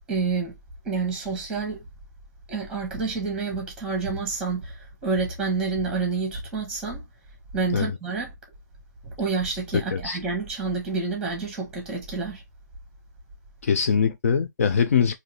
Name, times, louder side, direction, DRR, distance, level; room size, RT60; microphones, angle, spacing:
voice 1, 0.1-0.6 0.8-1.8 2.5-7.0 7.5-8.3 9.0-12.4, right 4 dB, 5° right, 1.6 m, -28 dB
voice 2, 13.6-15.2, left 6 dB, 50° left, 0.6 m, -22 dB
3.7 x 2.9 x 3.2 m
hypercardioid pair, 155°, 10 cm